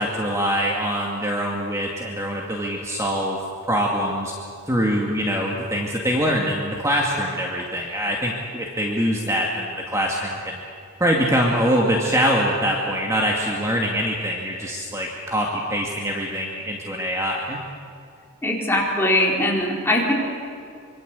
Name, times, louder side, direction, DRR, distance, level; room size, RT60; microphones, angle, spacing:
voice 1, 0.0-3.4 3.7-4.3 4.7-10.6 11.0-17.6, equal, 15° right, -2 dB, 2.3 m, -23 dB
voice 2, 18.4-20.1, left 1 dB, 10° left, -3 dB, 4.4 m, -21 dB
25.5 x 25.0 x 8.4 m, 2.4 s
head